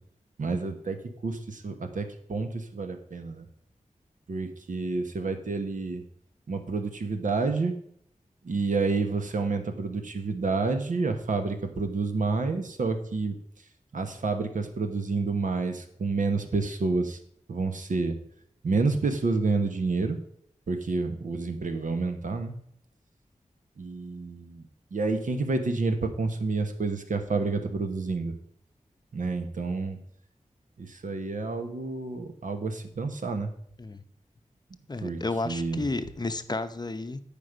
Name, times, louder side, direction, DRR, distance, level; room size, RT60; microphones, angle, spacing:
voice 1, 0.4-1.0 1.2-3.5 4.3-6.0 6.5-7.7 8.4-13.4 13.9-17.2 17.5-18.2 18.6-20.2 20.7-22.6 23.8-24.6 24.9-28.3 29.1-30.0 30.8-33.5 35.0-35.2 35.4-35.8, right 3 dB, 80° right, 7 dB, 1.1 m, -29 dB
voice 2, 34.9-37.2, left 2 dB, 30° left, 10 dB, 0.7 m, -32 dB
9.6 x 5.2 x 5.0 m, 0.66 s
wide cardioid pair, 80°, 13 cm